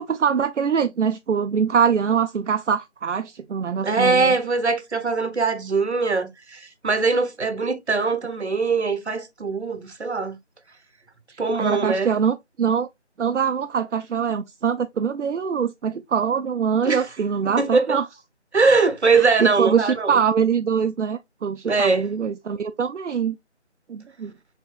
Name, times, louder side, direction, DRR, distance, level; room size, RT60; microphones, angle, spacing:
voice 1, 0.0-4.3 11.3-12.9 13.2-18.1 19.1-23.4 23.9-24.3, right 7 dB, 85° right, 0.5 m, -23 dB
voice 2, 3.8-10.4 11.4-12.1 16.9-17.0 17.6-18.0 18.5-20.2 21.6-22.1, right 4 dB, 65° right, 1.0 m, -21 dB
4.4 x 3.6 x 2.4 m
figure-of-eight pair, 170°, 35 cm